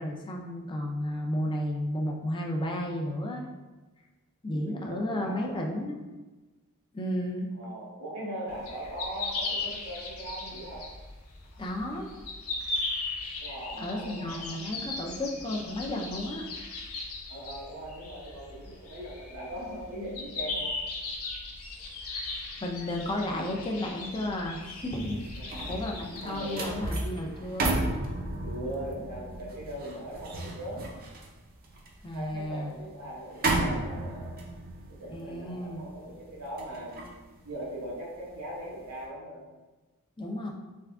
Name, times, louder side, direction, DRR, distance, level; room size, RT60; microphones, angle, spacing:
voice 1, 0.0-3.5 4.4-6.0 6.9-7.5 11.6-12.1 13.8-16.4 22.6-25.2 25.7-27.7 32.0-32.7 35.1-35.9 40.2-40.5, left 1 dB, 20° left, 1 dB, 0.5 m, -33 dB
voice 2, 4.5-5.7 7.5-10.9 13.4-14.4 17.3-20.7 25.3-25.8 26.2-26.8 28.4-30.8 32.1-34.3 34.9-37.0 37.4-39.4, right 1 dB, 90° right, -6 dB, 1.2 m, -40 dB
sound 1, 8.5-26.7, left 3 dB, 70° left, 0.8 m, -38 dB
sound 2, 25.0-38.3 38.7-39.0, right 2 dB, 40° right, 0.6 m, -34 dB
3.6 x 3.4 x 3.4 m, 1.2 s
head